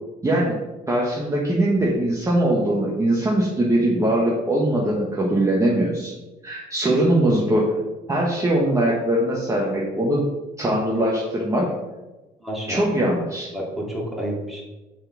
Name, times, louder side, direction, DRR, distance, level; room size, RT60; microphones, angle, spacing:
voice 1, 0.2-0.6 0.9-6.2 6.4-7.7 8.1-10.2 10.6-11.7 12.7-13.5, right 1 dB, 20° right, -4 dB, 1.2 m, -21 dB
voice 2, 12.4-12.8 13.5-14.6, equal, ahead, -4 dB, 2.2 m, -29 dB
6.4 x 4.2 x 4.7 m, 1.1 s
cardioid pair, 110°, 17 cm